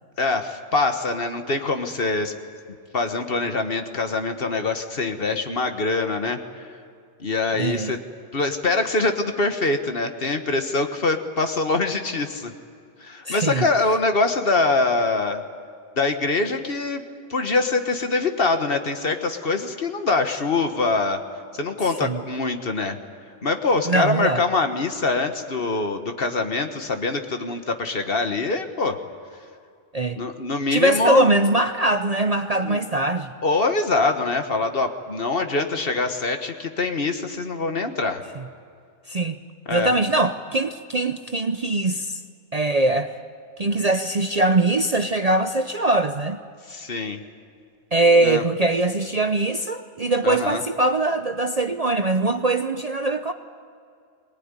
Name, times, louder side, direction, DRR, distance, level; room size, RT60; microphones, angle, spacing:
voice 1, 0.2-2.3 2.9-6.4 7.2-8.0 8.3-12.5 13.0-15.4 16.0-17.0 17.3-21.2 21.5-23.0 23.4-29.0 30.2-31.3 32.6-32.8 33.4-38.2 39.7-39.9 46.7-47.2 48.2-48.4 50.2-50.6, left 3 dB, 50° left, 7 dB, 1.6 m, -24 dB
voice 2, 7.6-8.0 13.3-13.7 22.0-22.2 23.9-24.4 29.9-30.2 30.7-33.3 39.1-39.4 39.7-42.2 42.5-43.1 43.6-46.4 47.9-53.3, right 2 dB, 40° right, 8 dB, 0.7 m, -22 dB
22.5 x 19.0 x 9.8 m, 2.3 s
omnidirectional pair, 1.2 m